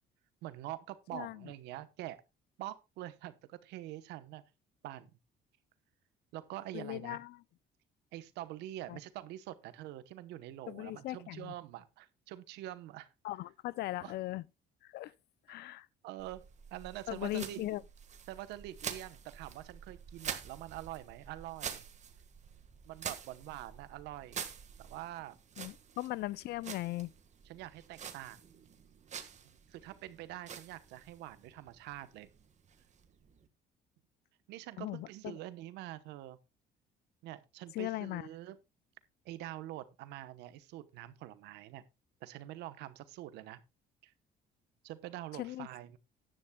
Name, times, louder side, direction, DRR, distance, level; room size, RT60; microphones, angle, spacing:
voice 1, 0.4-2.2 2.6-4.4 4.8-5.1 6.3-7.2 8.1-13.1 14.0-14.1 16.0-16.4 16.7-17.7 18.3-21.9 22.8-24.4 24.8-25.3 27.5-28.4 29.7-32.3 34.5-36.4 37.2-38.6 39.2-41.8 42.2-43.6 44.0-44.1 44.8-46.0, right 14 dB, 90° right, 1.0 m, -45 dB
voice 2, 1.1-1.5 6.7-7.4 8.9-9.0 10.7-11.5 13.2-14.4 14.8-15.1 15.5-15.9 17.1-17.8 25.6-27.1 34.8-35.4 37.7-38.3 45.3-45.7, left 17 dB, 70° left, 0.5 m, -39 dB
sound 1, 16.2-33.5, right 7 dB, 45° right, 1.6 m, -47 dB
14.5 x 10.5 x 2.3 m
cardioid pair, 110°, 17 cm